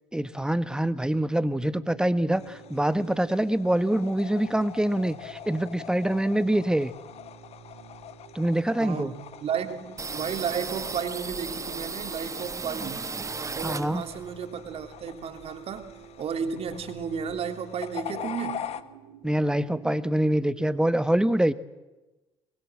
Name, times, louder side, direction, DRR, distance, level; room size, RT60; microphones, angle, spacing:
voice 1, 0.1-6.9 8.3-9.1 12.8-12.9 13.6-14.0 19.2-21.5, right 1 dB, 5° right, 13 dB, 1.5 m, -25 dB
sound 1, 1.0-20.9, right 9 dB, 75° right, 3.1 m, -51 dB
sound 2, 2.3-18.8, left 10 dB, 50° left, 1.5 m, -43 dB
voice 2, 8.8-13.0 13.5-15.9 16.2-18.7, right 7 dB, 50° right, 7 dB, 3.0 m, -33 dB
sound 3, 10.0-14.3 14.7-16.0 16.3-16.4 16.7-17.4, right 4 dB, 25° right, 1.1 m, -36 dB
24.0 x 23.0 x 7.7 m, 1.1 s
figure-of-eight pair, 55°, 13 cm